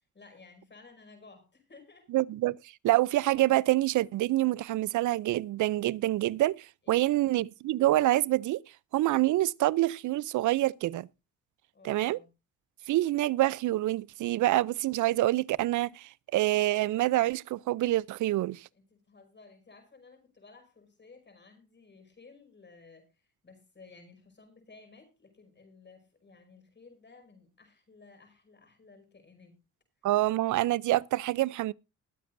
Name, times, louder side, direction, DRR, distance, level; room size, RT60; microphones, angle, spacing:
voice 1, 0.1-2.1 6.8-7.2 11.7-12.3 18.7-29.6, left 4 dB, 35° left, 5.4 m, -56 dB
voice 2, 2.1-2.6 2.8-8.6 8.9-11.1 11.8-12.2 12.9-18.7 30.0-31.7, right 16 dB, 75° right, 0.5 m, -26 dB
21.0 x 8.5 x 2.6 m
cardioid pair, 75°, 30 cm